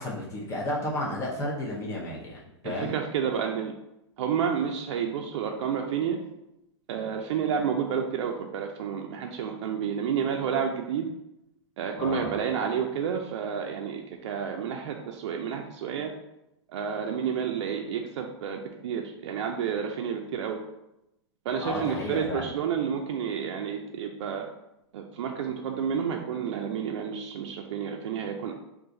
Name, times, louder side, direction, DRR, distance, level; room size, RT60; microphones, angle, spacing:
voice 1, 0.0-2.9 12.0-12.4 21.6-22.5, left 1 dB, 20° left, -4 dB, 0.6 m, -32 dB
voice 2, 2.6-3.7 4.2-6.2 6.9-11.1 11.8-16.1 16.7-20.6 21.5-24.5 24.9-28.5, right 7 dB, 75° right, 2 dB, 0.4 m, -30 dB
2.5 x 2.3 x 3.9 m, 0.88 s
hypercardioid pair, 120°, 15 cm